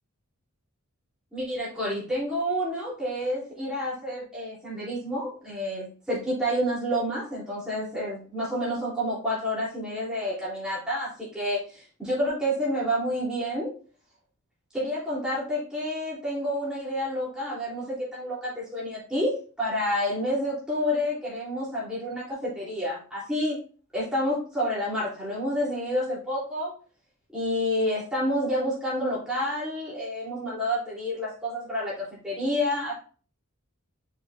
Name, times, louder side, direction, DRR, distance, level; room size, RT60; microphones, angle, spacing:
voice 1, 1.3-13.7 14.7-23.6 23.9-26.7 27.3-32.9, equal, 5° right, -8 dB, 3.3 m, -29 dB
6.8 x 6.2 x 2.6 m, 0.39 s
head